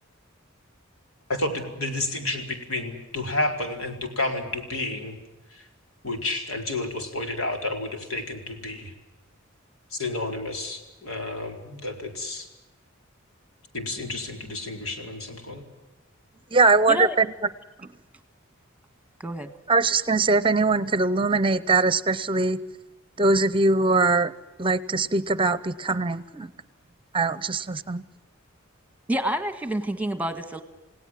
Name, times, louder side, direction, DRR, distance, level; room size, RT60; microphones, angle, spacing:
voice 1, 1.3-5.2 5.5-5.6 6.0-8.9 9.9-12.5 13.7-15.6, left 2 dB, 85° left, 4 dB, 4.4 m, -30 dB
voice 2, 16.5-17.3 19.7-22.6 23.2-24.3 24.6-26.5 27.1-28.0, right 3 dB, 25° right, 16 dB, 0.8 m, -21 dB
voice 3, 29.1-30.6, equal, 5° right, 9 dB, 1.6 m, -28 dB
28.5 x 17.5 x 7.6 m, 1.1 s
head